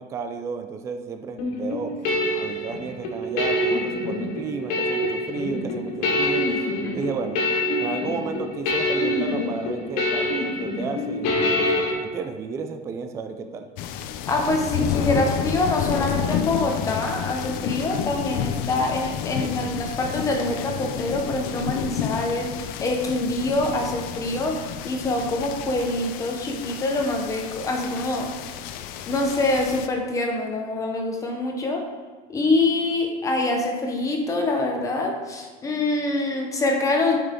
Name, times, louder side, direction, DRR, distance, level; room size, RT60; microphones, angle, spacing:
voice 1, 0.0-2.0 2.3-6.5 6.9-7.4 7.8-13.7, right 5 dB, 15° right, 6 dB, 0.3 m, -33 dB
sound 1, 1.4-11.9, left 1 dB, 85° left, 1.9 m, -25 dB
sound 2, 13.8-29.9, left 9 dB, 50° left, 0.5 m, -30 dB
voice 2, 14.3-28.3 29.1-31.9 32.3-37.2, left 2 dB, 15° left, 1 dB, 0.8 m, -25 dB
11.0 x 5.7 x 3.7 m, 1.4 s
cardioid pair, 175°, 20 cm